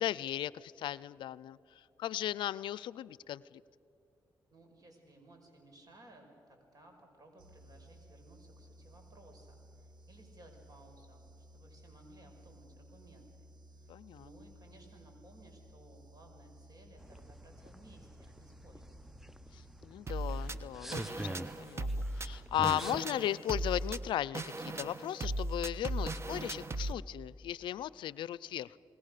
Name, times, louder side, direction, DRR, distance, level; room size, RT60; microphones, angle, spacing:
voice 1, 0.0-3.6 13.9-14.3 19.5-28.8, left 12 dB, 85° left, 20 dB, 0.4 m, -37 dB
voice 2, 4.5-13.5 13.8-13.9 14.2-19.0, right 1 dB, 50° right, 3 dB, 5.7 m, -59 dB
sound 1, 7.4-20.5, right 1 dB, 70° right, 2.2 m, -57 dB
sound 2, 17.0-23.0, right 1 dB, 5° right, 0.5 m, -46 dB
sound 3, 20.1-26.9, right 2 dB, 35° right, 1.2 m, -37 dB
29.0 x 20.0 x 6.7 m, 2.8 s
cardioid pair, 65°, 8 cm